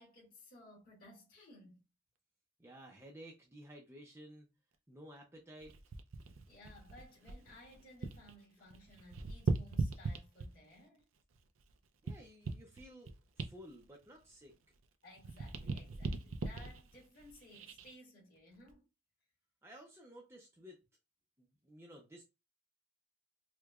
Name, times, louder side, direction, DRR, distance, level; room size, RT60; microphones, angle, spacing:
voice 1, 0.0-1.8 6.5-11.1 15.0-18.9, left 1 dB, 45° left, 1.9 m, -58 dB
voice 2, 2.6-4.5 4.9-5.7 12.0-14.5 19.6-20.8 21.4-22.2, equal, 15° right, 0.5 m, -54 dB
sound 1, 5.6-8.3 8.6-10.8 11.3-14.9 15.1-17.9 18.5-18.7, right 3 dB, 85° right, 0.6 m, -40 dB
4.6 x 2.2 x 2.4 m
head